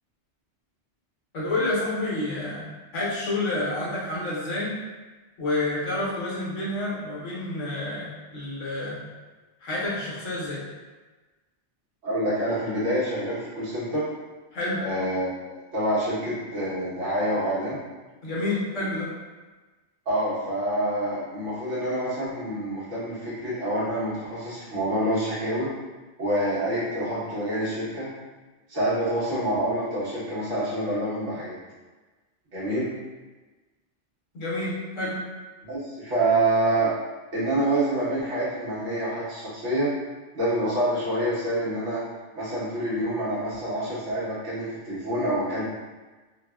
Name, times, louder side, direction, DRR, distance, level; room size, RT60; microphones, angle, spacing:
voice 1, 1.3-2.7 2.9-4.8 5.4-9.0 9.6-10.6 14.5-14.8 18.2-19.1 34.3-35.2, left 2 dB, 90° left, -7 dB, 1.2 m, -29 dB
voice 2, 12.0-14.1 14.8-17.8 20.1-25.7 26.2-28.1 28.7-31.6 32.5-32.9 35.6-36.9 37.3-39.9 40.3-42.0 42.3-45.6, right 1 dB, 70° right, -10 dB, 1.3 m, -27 dB
3.3 x 2.1 x 2.2 m, 1.3 s
omnidirectional pair, 1.2 m